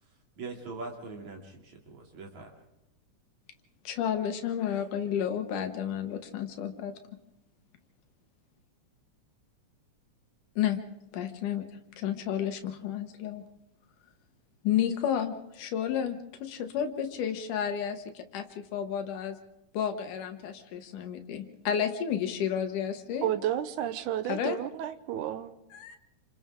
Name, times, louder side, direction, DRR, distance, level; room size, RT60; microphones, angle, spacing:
voice 1, 0.4-2.5, right 3 dB, 65° right, 4.3 m, -42 dB
voice 2, 3.8-7.2 10.6-10.8 11.1-11.7 11.9-13.5 14.6-19.4 19.7-23.3 24.3-24.6 25.7-26.0, left 9 dB, 85° left, 2.8 m, -31 dB
voice 3, 23.2-25.5, right 11 dB, 80° right, 2.4 m, -31 dB
28.5 x 27.0 x 3.7 m
omnidirectional pair, 3.5 m